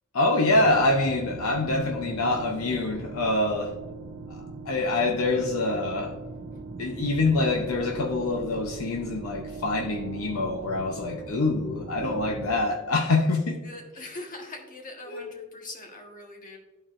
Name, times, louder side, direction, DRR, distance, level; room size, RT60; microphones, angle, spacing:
voice 1, 0.1-3.8 4.3-6.2 6.8-13.6 15.1-15.4, left 2 dB, 70° left, 0.7 m, -25 dB
sound 1, 0.5-12.6, right 3 dB, 60° right, 0.9 m, -40 dB
voice 2, 13.6-16.6, left 2 dB, 40° left, 1.3 m, -42 dB
13.0 x 4.4 x 2.5 m
head